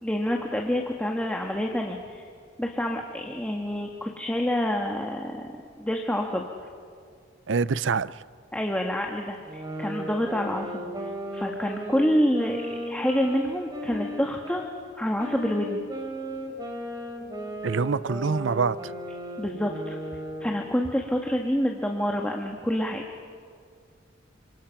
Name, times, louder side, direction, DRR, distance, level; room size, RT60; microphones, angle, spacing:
voice 1, 0.0-2.3 2.6-5.5 5.8-6.5 8.5-10.8 11.3-14.7 14.9-15.8 19.4-20.0 20.4-23.0, equal, 5° left, 1 dB, 1.5 m, -27 dB
voice 2, 7.5-8.2 17.6-18.9, right 5 dB, 75° right, 17 dB, 0.6 m, -25 dB
sound 1, 9.5-14.7 15.2-20.8, equal, 20° right, 3.3 m, -36 dB
29.0 x 27.0 x 5.8 m, 2.1 s
head